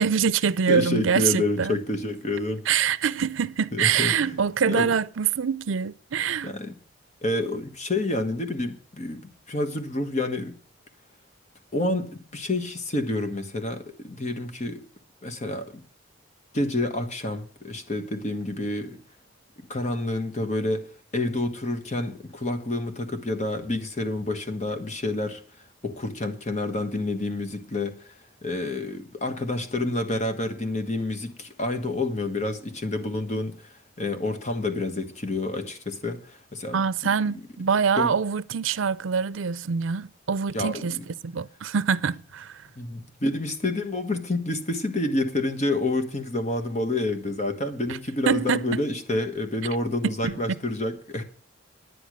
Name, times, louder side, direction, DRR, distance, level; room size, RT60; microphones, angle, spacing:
voice 1, 0.0-1.8 2.7-6.5 36.7-41.0 41.2-42.6 48.3-48.7 50.0-50.3, right 6 dB, 80° right, 0.5 m, -25 dB
voice 2, 0.7-2.6 3.7-4.4 4.7-4.9 6.4-6.7 7.2-10.5 11.7-14.8 15.2-15.8 16.5-19.0 19.6-20.9 21.1-25.4 25.8-28.1 28.4-36.8 37.9-38.1 40.5-41.0 42.8-51.2, left 2 dB, 35° left, 1.3 m, -28 dB
10.0 x 9.9 x 6.3 m
head